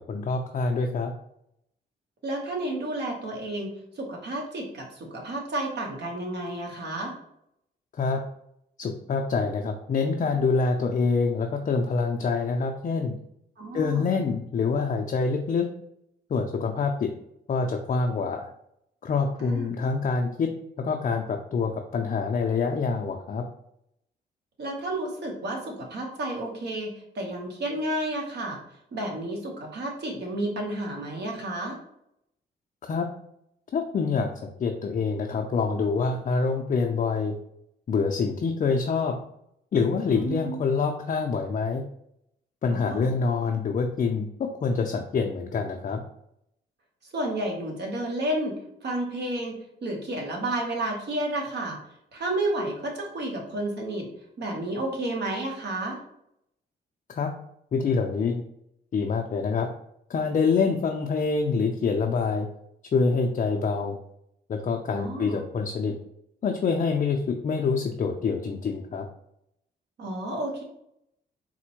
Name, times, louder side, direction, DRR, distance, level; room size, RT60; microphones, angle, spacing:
voice 1, 0.1-1.1 8.0-8.2 8.8-13.1 13.7-15.7 16.3-17.1 17.5-18.5 19.0-20.5 20.8-23.4 32.8-33.1 33.7-34.3 34.6-37.3 37.9-39.2 39.7-41.8 42.6-46.0 57.2-57.3 57.7-58.4 58.9-59.7 60.1-62.5 62.9-64.0 64.5-66.0 66.4-69.1, left 4 dB, 40° left, 2 dB, 0.4 m, -26 dB
voice 2, 2.2-3.7 4.0-7.1 13.6-14.1 19.4-19.8 24.6-28.6 28.9-31.8 40.1-40.6 42.7-43.2 47.1-48.5 48.8-51.8 52.1-54.1 54.4-56.0 64.9-65.4 70.0-70.6, right 1 dB, 60° right, 0 dB, 1.1 m, -31 dB
4.1 x 2.1 x 2.9 m, 0.77 s
supercardioid pair, 60°, 20 cm